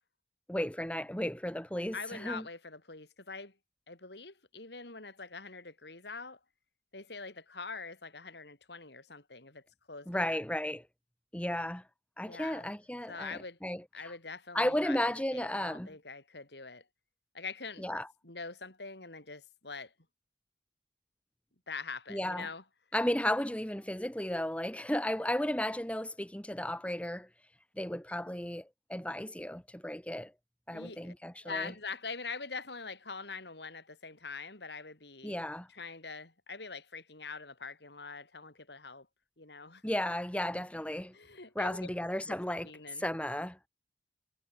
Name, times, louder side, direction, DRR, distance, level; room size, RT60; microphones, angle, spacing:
voice 1, 0.5-2.4 10.1-10.8 11.3-11.8 12.2-13.8 14.5-15.9 17.8-18.1 22.1-22.5 22.9-27.3 27.8-30.3 30.7-31.7 35.2-35.7 39.8-41.1 41.6-42.7 43.0-43.6, left 1 dB, 5° left, 1.9 m, -34 dB
voice 2, 1.9-3.6 3.9-6.4 6.9-10.3 12.3-12.7 13.1-13.6 13.9-16.9 17.3-17.8 18.2-19.9 21.7-22.6 30.7-31.1 31.4-35.4 35.7-39.1 39.4-39.8 41.1-41.9 42.3-43.0, left 4 dB, 70° left, 3.7 m, -44 dB
head